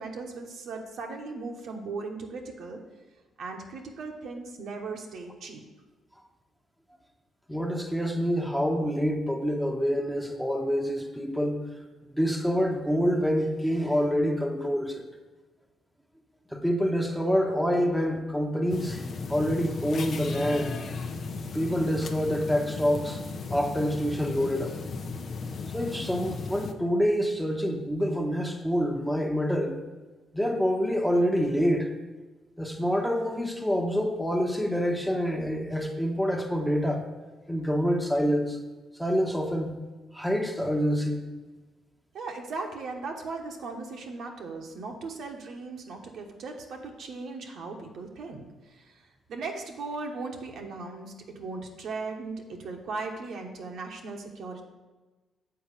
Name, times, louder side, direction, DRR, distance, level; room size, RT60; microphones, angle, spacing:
voice 1, 0.0-2.8 3.4-5.6 42.1-49.0 49.3-54.6, right 3 dB, 70° right, 2 dB, 1.2 m, -38 dB
voice 2, 7.5-11.6 12.1-15.0 16.5-20.8 21.5-23.2 23.5-24.7 25.7-29.8 30.3-31.9 32.6-37.1 37.5-38.6 39.0-39.8 40.1-41.3, equal, ahead, 2 dB, 1.0 m, -27 dB
sound 1, 18.7-26.7, left 4 dB, 55° left, 0.7 m, -36 dB
7.0 x 4.4 x 6.7 m, 1.2 s
cardioid pair, 90°, 0 cm